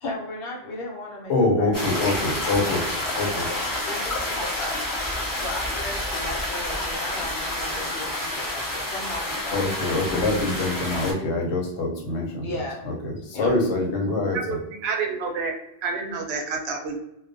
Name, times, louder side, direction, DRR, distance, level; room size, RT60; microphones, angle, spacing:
voice 1, 0.0-2.0 2.6-3.5 3.8-4.8 5.4-10.4 11.0-11.1 12.4-12.8 13.3-13.5, left 2 dB, 65° left, -3 dB, 0.9 m, -36 dB
voice 2, 1.3-2.8 3.2-3.5 9.5-14.6, left 2 dB, 90° left, 0 dB, 1.0 m, -25 dB
sound 1, 1.7-11.1, left 1 dB, 30° left, 0.4 m, -29 dB
voice 3, 14.8-15.5 15.8-17.0, right 4 dB, 75° right, 3 dB, 0.8 m, -28 dB
2.2 x 2.2 x 2.5 m, 0.80 s
omnidirectional pair, 1.1 m